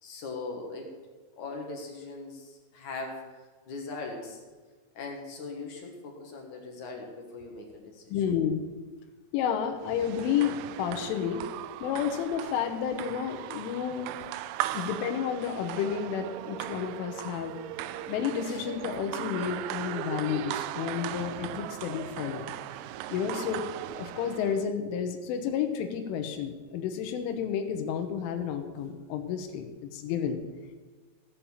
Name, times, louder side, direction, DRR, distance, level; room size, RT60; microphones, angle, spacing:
voice 1, 0.0-0.9 1.4-3.2 3.7-4.4 4.9-8.2 14.7-14.9 18.4-18.6, left 3 dB, 60° left, 1 dB, 2.1 m, -40 dB
voice 2, 8.1-8.6 9.3-11.5 11.8-14.1 14.7-17.6 18.1-22.5 23.1-23.6 23.9-30.4, left 8 dB, 85° left, 5 dB, 3.5 m, -31 dB
sound 1, 9.8-24.7, right 13 dB, 85° right, 2.8 m, -38 dB
16.0 x 7.1 x 7.3 m, 1.3 s
omnidirectional pair, 5.5 m